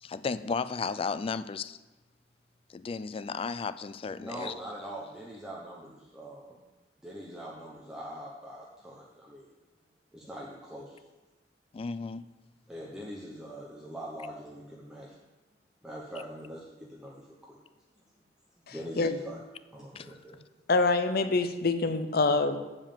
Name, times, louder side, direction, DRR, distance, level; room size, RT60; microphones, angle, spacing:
voice 1, 0.0-1.8 2.7-4.5 11.7-12.2 19.9-20.1, left 5 dB, 30° left, 14 dB, 0.3 m, -34 dB
voice 2, 4.2-6.6 7.0-9.5 10.1-11.0 12.7-15.1 15.8-17.6 18.7-19.4 19.7-20.4, right 1 dB, 5° right, -4 dB, 0.9 m, -43 dB
voice 3, 18.7-19.1 20.7-22.6, left 3 dB, 60° left, 10 dB, 0.7 m, -26 dB
7.2 x 5.3 x 7.3 m, 1.1 s
head